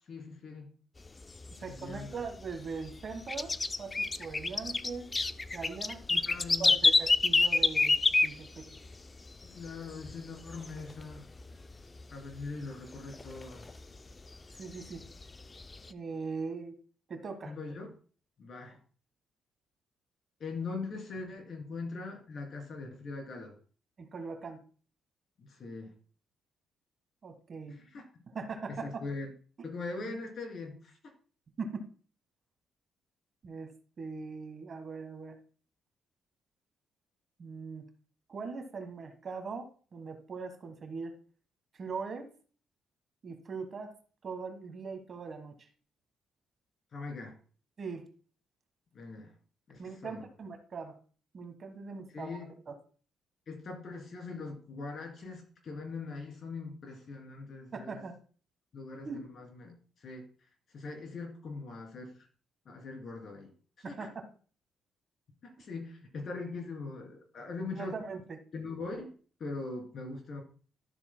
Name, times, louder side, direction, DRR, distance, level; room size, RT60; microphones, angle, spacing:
voice 1, 0.1-0.7 1.6-2.2 6.1-6.7 8.7-8.8 9.4-11.3 12.1-13.7 17.4-17.9 18.4-18.8 20.4-23.6 25.4-25.9 27.7-28.0 28.7-29.3 29.6-31.0 46.9-47.4 48.9-49.3 49.7-50.2 52.1-52.5 53.5-58.0 58.7-60.2 60.7-62.3 62.6-63.5 63.8-63.9 65.4-67.9 68.5-69.1 69.4-70.4, left 3 dB, 55° left, 1 dB, 3.1 m, -41 dB
sound 1, 1.1-2.5 2.9-8.9 9.3-9.4 9.7-10.2 10.5-11.7 12.0-12.1 12.4-12.5 13.0-14.1 14.6-15.9, left 3 dB, 25° left, 0.4 m, -27 dB
voice 2, 1.6-3.5 3.8-5.1 5.5-6.2 6.6-8.7 14.6-15.0 15.9-16.8 17.1-17.5 24.0-24.6 27.2-27.8 28.3-29.0 29.6-29.7 30.1-30.2 31.6-31.9 33.4-33.7 34.0-35.4 37.4-37.8 38.3-41.1 41.7-42.3 43.2-43.9 44.2-45.5 47.8-48.1 49.8-50.9 51.3-52.4 52.7-52.8 57.7-58.1 59.0-59.3 63.8-64.2 67.7-68.2, right 4 dB, 45° right, 7 dB, 1.4 m, -40 dB
12.5 x 6.9 x 2.2 m, 0.40 s
cardioid pair, 90°, 0 cm